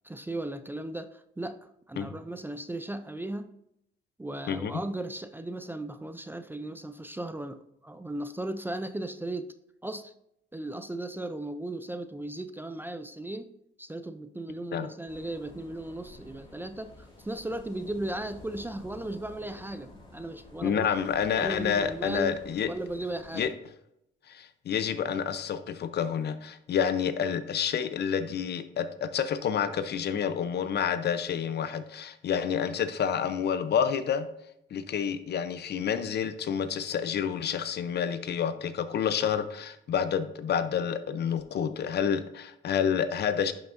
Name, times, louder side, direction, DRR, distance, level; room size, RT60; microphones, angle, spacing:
voice 1, 0.0-1.6 1.9-3.5 4.2-9.5 9.8-10.1 10.5-13.5 13.8-20.9 21.4-22.4 22.6-23.5, right 1 dB, 10° right, 0.4 m, -36 dB
sound 1, 15.1-23.5, left 1 dB, 25° left, 2.8 m, -51 dB
voice 2, 20.6-22.7 23.3-23.5 24.3-34.3 34.7-43.5, left 7 dB, 60° left, 0.7 m, -29 dB
11.0 x 5.8 x 2.6 m
cardioid pair, 90°, 20 cm